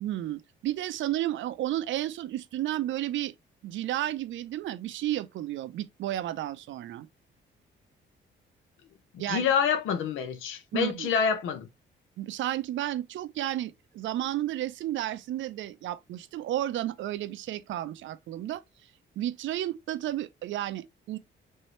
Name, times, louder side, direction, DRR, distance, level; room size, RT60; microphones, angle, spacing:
voice 1, 0.0-3.3 3.6-7.1 9.2-9.4 10.7-11.1 12.2-18.6 19.2-21.2, right 13 dB, 75° right, 0.5 m, -32 dB
voice 2, 9.3-11.7, left 7 dB, 85° left, 0.8 m, -27 dB
4.3 x 2.7 x 3.1 m
cardioid pair, 90°, 20 cm